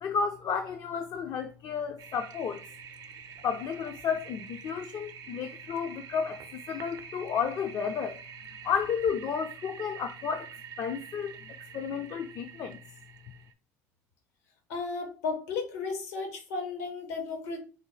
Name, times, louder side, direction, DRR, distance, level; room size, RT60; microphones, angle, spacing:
voice 1, 0.0-2.6 3.4-8.2 8.6-10.5 10.8-12.8, left 6 dB, 50° left, 0.4 m, -32 dB
Toilet flush, 2.0-13.5, right 7 dB, 50° right, 0.5 m, -47 dB
voice 2, 14.7-17.6, left 4 dB, 80° left, 0.9 m, -34 dB
3.8 x 2.2 x 3.1 m
hypercardioid pair, 75°, 8 cm